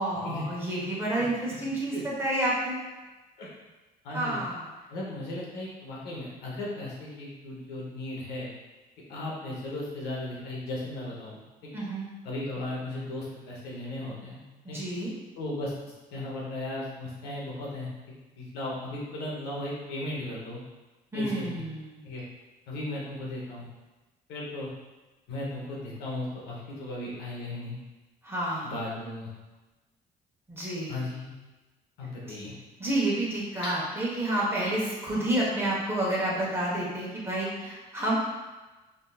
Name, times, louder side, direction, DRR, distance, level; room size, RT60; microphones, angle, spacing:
voice 1, 0.0-2.8 4.1-4.6 11.7-12.1 14.7-15.1 21.1-22.0 28.2-28.7 30.5-31.0 32.8-38.1, right 1 dB, 15° right, -6 dB, 1.0 m, -29 dB
voice 2, 4.0-4.4 4.9-8.5 9.1-11.7 12.2-14.4 14.7-14.8 15.3-15.7 16.1-17.9 18.4-20.6 21.1-21.6 22.0-22.2 22.7-23.7 24.3-24.7 25.3-27.8 28.6-29.3 30.9-31.3 32.0-32.5 33.6-33.8, left 1 dB, 90° left, -5 dB, 1.0 m, -36 dB
3.6 x 2.7 x 2.3 m, 1.2 s
cardioid pair, 110°, 17 cm